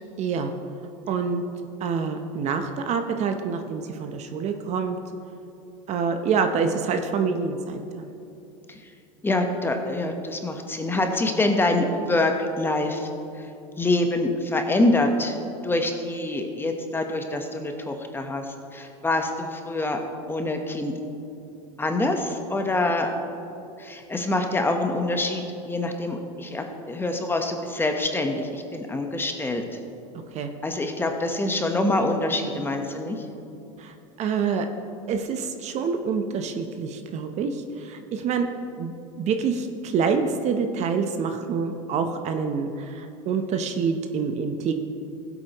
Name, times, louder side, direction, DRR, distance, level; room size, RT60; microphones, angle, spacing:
voice 1, 0.2-0.5 1.1-1.4 1.8-5.0 5.9-8.1 30.3-30.5 33.8-34.7 35.1-38.5 38.8-44.7, right 5 dB, 45° right, 7 dB, 0.8 m, -27 dB
voice 2, 9.2-13.1 13.8-15.3 15.6-18.4 18.7-20.0 20.3-20.9 21.8-23.1 23.8-29.6 30.6-33.2, left 2 dB, 15° left, 4 dB, 1.1 m, -25 dB
16.0 x 8.1 x 3.0 m, 2.7 s
hypercardioid pair, 100°, 17 cm